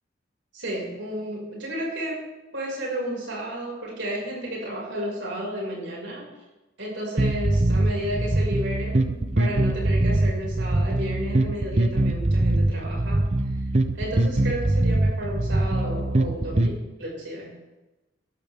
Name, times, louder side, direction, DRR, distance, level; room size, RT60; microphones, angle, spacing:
voice 1, 0.5-2.2 2.5-6.3 6.8-13.3 13.9-17.5, equal, 70° right, -2 dB, 5.8 m, -32 dB
sound 1, 7.2-16.7, right 1 dB, 35° right, 0.8 m, -23 dB
15.5 x 13.5 x 3.6 m, 1.1 s
head